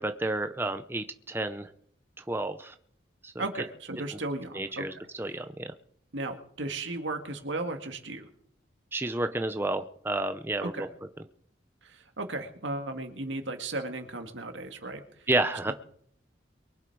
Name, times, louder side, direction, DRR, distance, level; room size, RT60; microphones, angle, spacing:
voice 1, 0.0-1.7 2.2-2.7 3.2-3.4 4.5-5.7 8.9-10.9 15.3-15.7, right 2 dB, 10° right, 8 dB, 0.6 m, -31 dB
voice 2, 3.4-5.0 6.1-8.3 10.6-10.9 11.8-15.3 15.6-15.7, right 2 dB, 80° right, 5 dB, 2.1 m, -35 dB
23.5 x 8.2 x 4.7 m, 0.63 s
head